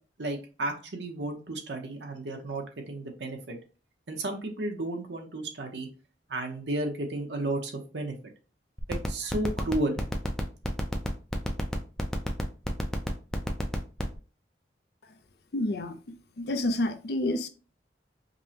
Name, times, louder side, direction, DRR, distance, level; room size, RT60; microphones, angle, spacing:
voice 1, 0.2-3.5 4.1-5.9 6.3-8.1 8.9-10.0, right 2 dB, 85° right, 0.9 m, -33 dB
sound 1, 8.8-14.2, equal, 5° left, 0.5 m, -30 dB
voice 2, 15.5-16.0 16.4-17.5, left 1 dB, 65° left, 0.5 m, -28 dB
5.2 x 2.1 x 2.8 m
head